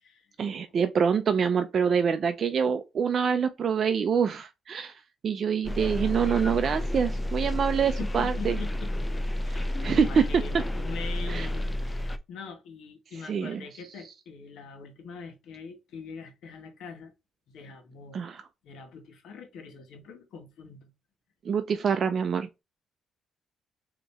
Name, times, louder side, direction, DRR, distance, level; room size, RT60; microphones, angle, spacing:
voice 1, 0.4-4.9 5.2-8.6 9.5-10.4 11.3-11.5 13.3-13.6 18.1-18.4 21.5-22.5, right 6 dB, 50° right, 0.4 m, -26 dB
sound 1, 5.6-12.2, left 1 dB, 15° left, 0.5 m, -30 dB
voice 2, 8.0-8.9 9.4-17.1 17.5-18.2 18.6-20.9, left 5 dB, 80° left, 1.2 m, -43 dB
4.1 x 2.9 x 3.4 m
cardioid pair, 115°, 0 cm